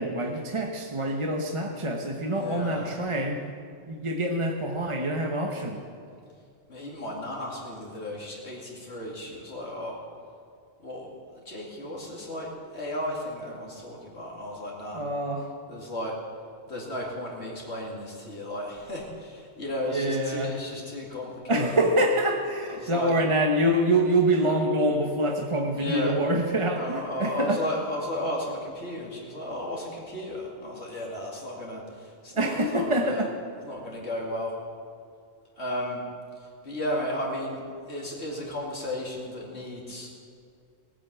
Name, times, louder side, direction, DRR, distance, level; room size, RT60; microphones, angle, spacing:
voice 1, 0.0-3.4 3.9-5.8 14.9-15.5 19.9-20.6 21.5-27.6 32.4-33.3, right 1 dB, 30° right, 2 dB, 1.0 m, -26 dB
voice 2, 2.2-2.9 6.7-10.0 10.8-11.1 11.5-15.0 15.7-16.1 16.7-21.9 22.7-23.2 24.3-24.6 25.7-26.1 26.7-33.2 33.6-34.5 35.6-36.0 36.6-37.6 37.9-40.1, left 1 dB, 70° left, -3 dB, 2.9 m, -34 dB
18.5 x 9.4 x 8.1 m, 2.3 s
omnidirectional pair, 1.2 m